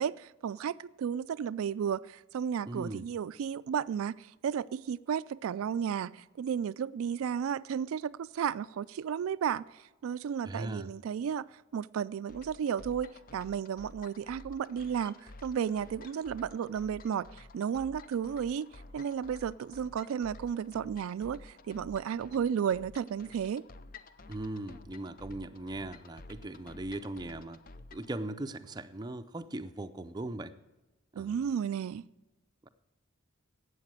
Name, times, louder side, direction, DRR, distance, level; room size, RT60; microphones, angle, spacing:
voice 1, 0.0-9.6 10.0-11.5 11.7-18.7 18.9-23.6 31.1-32.0, right 8 dB, 85° right, 0.3 m, -33 dB
voice 2, 2.7-3.1 10.4-10.9 24.3-27.6 27.9-30.5 31.1-31.5 32.6-32.7, right 2 dB, 20° right, 0.5 m, -39 dB
sound 1, 12.3-28.1, left 2 dB, 45° left, 0.6 m, -52 dB
12.0 x 8.4 x 7.6 m
head